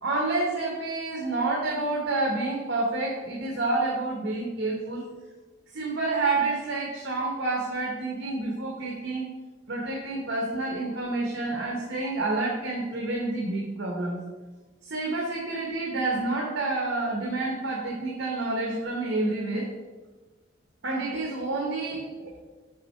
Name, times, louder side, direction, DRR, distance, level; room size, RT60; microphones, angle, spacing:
voice 1, 0.0-5.0 5.7-9.3 9.7-14.2 14.9-19.7 20.8-22.4, right 2 dB, 70° right, -2 dB, 1.1 m, -29 dB
7.6 x 3.6 x 4.4 m, 1.3 s
head